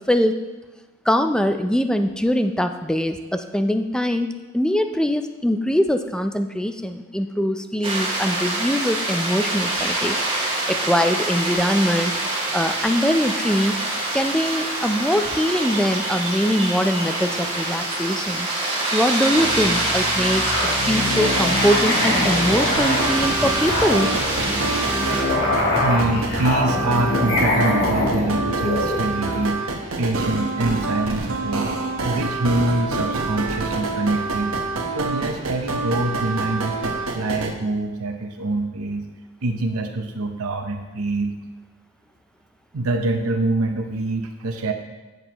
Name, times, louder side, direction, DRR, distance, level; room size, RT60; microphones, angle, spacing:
voice 1, 1.1-4.3 4.5-10.2 10.5-12.2 12.5-13.8 14.1-18.5 18.9-20.5 20.8-24.1, equal, 5° left, 7 dB, 0.4 m, -22 dB
sound 1, 7.8-25.2, right 2 dB, 25° right, 2.1 m, -25 dB
Musical instrument, 19.3-29.5, left 2 dB, 50° left, 1.8 m, -25 dB
sound 2, 22.8-37.5, right 3 dB, 75° right, 1.2 m, -27 dB
voice 2, 25.8-29.6 30.0-34.6 34.9-39.1 39.4-41.3 42.7-44.7, right 2 dB, 90° right, 4 dB, 0.8 m, -25 dB
12.5 x 7.9 x 3.0 m, 1.1 s
head